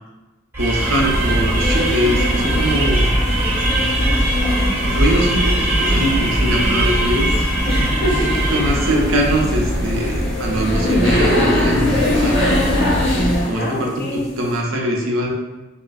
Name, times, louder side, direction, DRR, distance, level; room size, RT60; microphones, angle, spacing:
sound 1, 0.5-9.1, right 2 dB, 10° right, 0.6 m, -23 dB
sound 2, 0.6-13.6, equal, 85° left, 1.0 m, -20 dB
voice 1, 0.6-3.1 4.8-7.3 8.0-8.2 8.5-12.4 13.4-15.3, right 1 dB, 75° right, -1 dB, 0.6 m, -22 dB
voice 2, 3.6-4.2 7.7-8.8 13.5-14.3, equal, 50° left, -1 dB, 0.5 m, -27 dB
2.8 x 2.4 x 2.4 m, 1.1 s
head